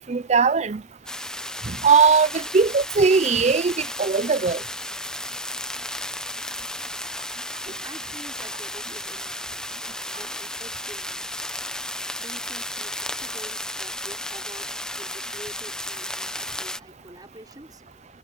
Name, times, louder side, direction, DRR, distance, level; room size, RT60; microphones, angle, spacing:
voice 1, 0.1-0.8 1.7-4.6, right 5 dB, 40° right, 0.6 m, -19 dB
sound 1, 1.1-16.8, left 1 dB, 5° left, 1.0 m, -33 dB
voice 2, 7.8-9.6 10.1-11.6 12.2-17.8, right 1 dB, 20° right, 4.9 m, -46 dB
head